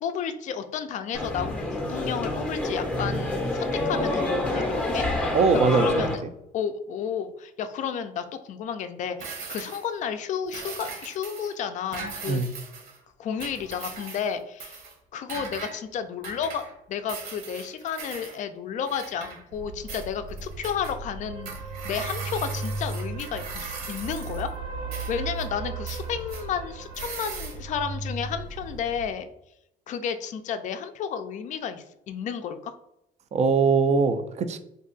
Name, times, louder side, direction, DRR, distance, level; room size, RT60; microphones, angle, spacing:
voice 1, 0.0-5.0 5.5-6.2 6.5-12.5 13.2-14.8 15.1-16.6 16.9-21.5 21.8-24.5 25.1-29.3 29.9-32.7, left 7 dB, 45° left, 9 dB, 0.4 m, -32 dB
sound 1, 1.1-6.1, left 1 dB, 5° left, 0.6 m, -27 dB
voice 2, 5.3-6.1 12.3-12.5 33.3-34.6, right 5 dB, 40° right, 10 dB, 0.4 m, -22 dB
sound 2, 9.2-9.9 10.5-11.5 11.9-13.0 13.4-14.3 14.6-14.9 15.3-15.8 16.2-16.7 17.1-18.4 18.8-19.6 19.9-20.9 21.4-24.5 24.9-25.5 25.9-26.4 26.9-27.6, right 4 dB, 60° right, 1.0 m, -39 dB
sound 3, 19.5-29.1, right 3 dB, 75° right, 1.4 m, -36 dB
2.6 x 2.3 x 3.7 m, 0.83 s
cardioid pair, 110°, 17 cm